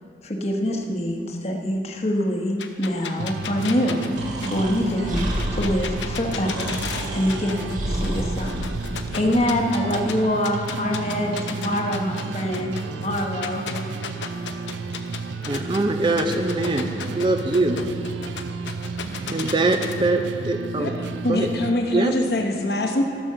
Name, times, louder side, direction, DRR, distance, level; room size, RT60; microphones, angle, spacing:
voice 1, 0.2-4.1 4.4-5.3 5.5-6.8 7.1-8.7 9.1-13.9, left 1 dB, 35° left, 2 dB, 1.1 m, -25 dB
sound 1, 2.6-7.8 8.0-10.1 10.4-15.8 16.2-19.9, left 7 dB, 90° left, 0.8 m, -34 dB
sound 2, 3.2-21.7, right 4 dB, 85° right, 0.4 m, -33 dB
Breathing, 4.1-9.3, equal, 45° right, 1.6 m, -30 dB
voice 2, 15.5-17.9 19.3-21.0 21.3-21.5 21.9-22.1, right 2 dB, 25° right, 6 dB, 0.5 m, -23 dB
voice 3, 21.2-23.0, left 2 dB, 60° left, 2 dB, 1.1 m, -23 dB
14.0 x 6.1 x 6.7 m, 2.6 s
head